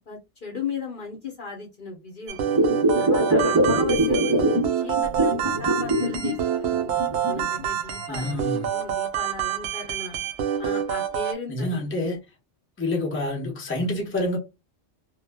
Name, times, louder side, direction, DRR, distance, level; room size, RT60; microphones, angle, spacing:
voice 1, 0.1-2.4 2.9-6.9 7.3-8.4 8.7-10.2 10.6-11.8, left 4 dB, 50° left, 0.8 m, -36 dB
sound 1, 2.3-11.3, right 9 dB, 70° right, 0.8 m, -27 dB
sound 2, 2.5-4.7 4.9-6.3 6.7-7.6 8.3-8.4, right 1 dB, 30° right, 0.4 m, -22 dB
voice 2, 8.1-8.7 11.5-12.2 12.8-14.4, left 1 dB, 15° left, 0.6 m, -27 dB
2.1 x 2.0 x 3.3 m
omnidirectional pair, 1.2 m